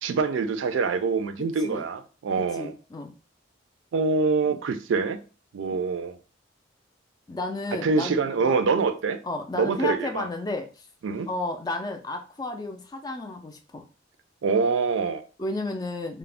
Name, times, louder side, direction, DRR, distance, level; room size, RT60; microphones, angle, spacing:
voice 1, 0.0-2.7 3.9-5.2 5.5-6.2 7.8-9.2 9.6-10.3 11.0-11.3 14.4-15.2, right 4 dB, 85° right, 0.4 m, -25 dB
voice 2, 1.4-1.9 2.4-3.1 4.5-4.6 5.7-5.8 7.3-8.5 9.2-10.9 11.3-13.8 15.4-16.2, left 2 dB, 20° left, 0.3 m, -33 dB
2.4 x 2.0 x 3.3 m
head